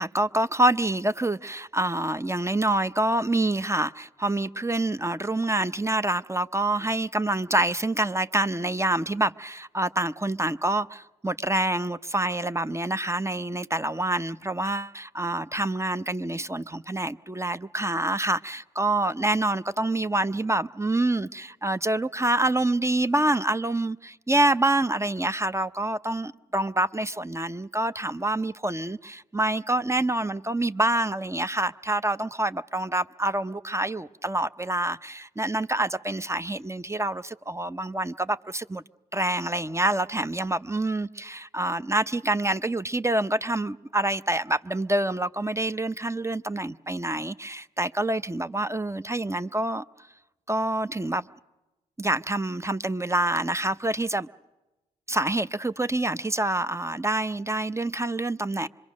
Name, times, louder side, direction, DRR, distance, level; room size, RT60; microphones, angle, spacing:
voice 1, 0.0-38.8 39.1-49.8 50.5-51.2 52.0-54.3 55.1-58.7, right 1 dB, 15° right, 0.7 m, -26 dB
25.5 x 22.5 x 6.3 m
hypercardioid pair, 45°, 19 cm